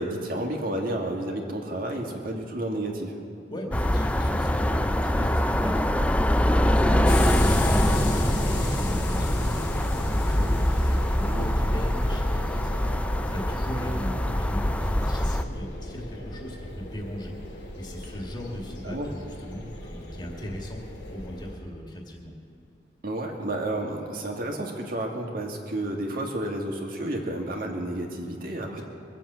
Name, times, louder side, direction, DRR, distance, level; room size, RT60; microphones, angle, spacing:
voice 1, 0.0-3.1 6.8-7.1 11.3-11.5 18.8-19.1 23.0-28.8, right 1 dB, 55° right, 1 dB, 2.1 m, -31 dB
voice 2, 3.5-5.9 6.2-20.8 21.1-22.3, left 1 dB, 25° left, -1 dB, 2.3 m, -38 dB
sound 1, 3.7-15.4, left 1 dB, 5° left, 0.4 m, -24 dB
sound 2, 7.0-21.5, left 1 dB, 80° left, 3.8 m, -36 dB
22.5 x 7.5 x 8.2 m, 2.6 s
head